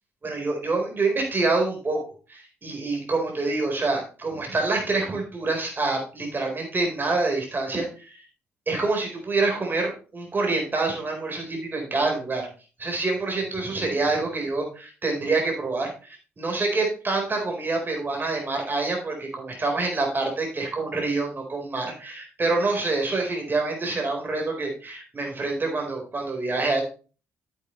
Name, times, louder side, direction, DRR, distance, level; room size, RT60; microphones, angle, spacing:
voice 1, 0.2-8.2 8.7-12.5 12.8-26.8, right 3 dB, 30° right, 1 dB, 4.3 m, -26 dB
9.7 x 8.3 x 3.2 m, 0.36 s
figure-of-eight pair, 45°, 7 cm